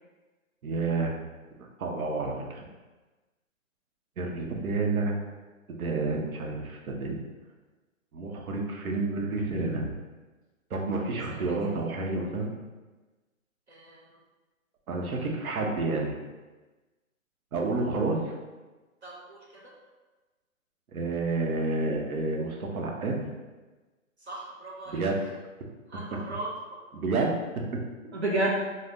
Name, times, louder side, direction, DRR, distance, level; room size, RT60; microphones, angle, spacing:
voice 1, 0.6-1.1 1.8-2.6 4.2-5.2 5.7-7.2 8.1-9.9 10.7-12.5 14.9-16.1 17.5-18.4 20.9-23.2 24.9-25.2 26.9-27.3 27.7-27.8, right 3 dB, 80° right, 0 dB, 0.8 m, -29 dB
voice 2, 13.7-14.0 19.0-19.7 24.3-25.0 25.9-26.8 28.1-28.6, right 1 dB, 50° right, -3 dB, 0.5 m, -32 dB
2.6 x 2.0 x 3.4 m, 1.2 s
hypercardioid pair, 170°, 42 cm